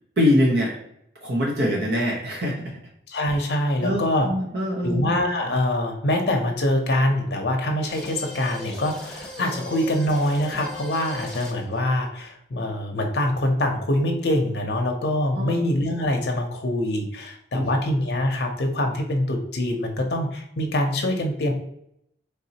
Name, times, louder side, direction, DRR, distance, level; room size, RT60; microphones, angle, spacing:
voice 1, 0.2-0.8 1.2-2.8 3.8-5.0 15.3-15.6 17.5-17.7, left 1 dB, 70° right, -2 dB, 0.8 m, -23 dB
voice 2, 3.1-4.3 4.8-21.5, left 1 dB, 70° left, 2 dB, 0.6 m, -24 dB
sound 1, 7.9-11.8, left 1 dB, 5° left, 0.8 m, -39 dB
4.1 x 3.4 x 2.8 m, 0.74 s
head